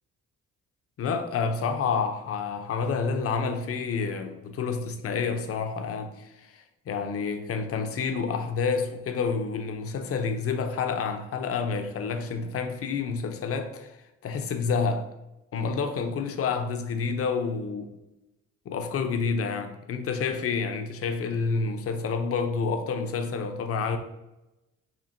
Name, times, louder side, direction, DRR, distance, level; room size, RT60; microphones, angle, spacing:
voice 1, 1.0-14.0 14.2-15.1 15.5-17.9 18.7-24.0, left 5 dB, 50° left, 0.5 m, -29 dB
4.3 x 2.7 x 2.5 m
cardioid pair, 90°, 30 cm